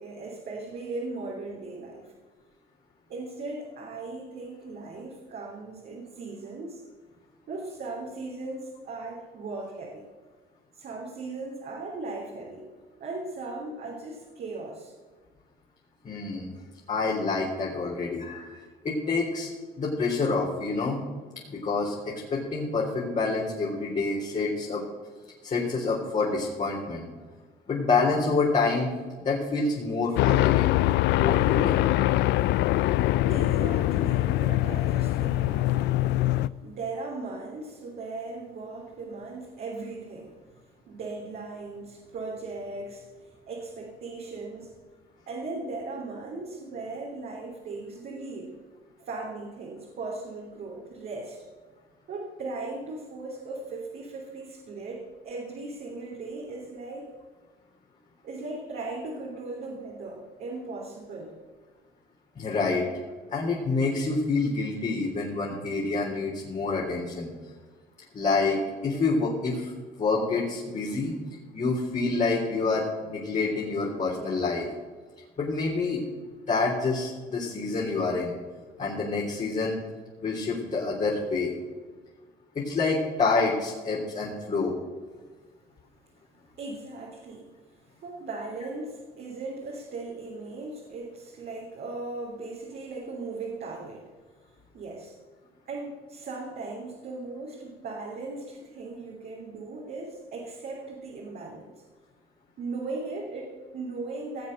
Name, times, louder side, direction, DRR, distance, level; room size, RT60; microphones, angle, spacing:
voice 1, 0.0-2.1 3.1-6.8 7.5-10.1 10.7-12.7 13.0-14.9 33.2-36.4 36.6-40.4 40.9-44.8 45.3-48.6 49.0-51.4 52.1-57.1 58.2-61.3 86.6-87.5 88.0-94.1 94.7-95.2 95.6-101.7 102.6-104.5, right 3 dB, 55° right, -2 dB, 3.4 m, -38 dB
voice 2, 16.0-16.5 16.9-18.5 18.8-19.5 19.8-21.0 21.5-24.8 25.4-27.1 27.7-28.9 29.2-30.7 31.1-31.8 62.4-62.9 63.3-67.3 68.1-69.7 70.0-71.2 71.5-74.7 75.4-76.0 76.5-78.3 78.8-79.8 80.2-81.5 82.5-84.7, left 3 dB, 40° left, -4 dB, 3.7 m, -27 dB
sound 1, 30.2-36.5, left 15 dB, 70° left, 0.4 m, -23 dB
18.0 x 7.6 x 6.6 m, 1.4 s
supercardioid pair, 90°, 19 cm